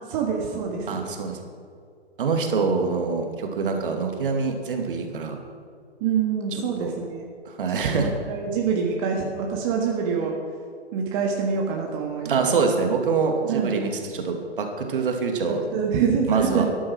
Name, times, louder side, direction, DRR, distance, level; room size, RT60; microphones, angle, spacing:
voice 1, 0.0-1.0 6.0-7.2 7.9-10.4 10.9-12.5 13.5-13.9 15.7-16.6, right 6 dB, 30° right, 0 dB, 1.6 m, -26 dB
voice 2, 0.9-1.4 2.2-5.4 6.5-6.9 7.5-8.1 12.2-15.6 16.3-16.7, right 5 dB, 50° right, 3 dB, 2.2 m, -25 dB
13.5 x 11.0 x 6.2 m, 2.2 s
figure-of-eight pair, 125°, 34 cm